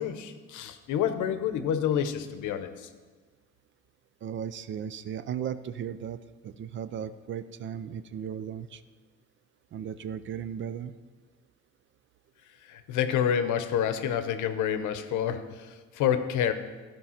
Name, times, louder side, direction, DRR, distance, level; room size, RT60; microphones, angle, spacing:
voice 1, 0.0-2.9 12.7-16.5, left 9 dB, 80° left, 10 dB, 0.9 m, -28 dB
voice 2, 4.2-8.8 9.7-10.9, right 8 dB, 40° right, 14 dB, 0.4 m, -36 dB
14.0 x 5.3 x 5.8 m, 1.4 s
cardioid pair, 155°, 30 cm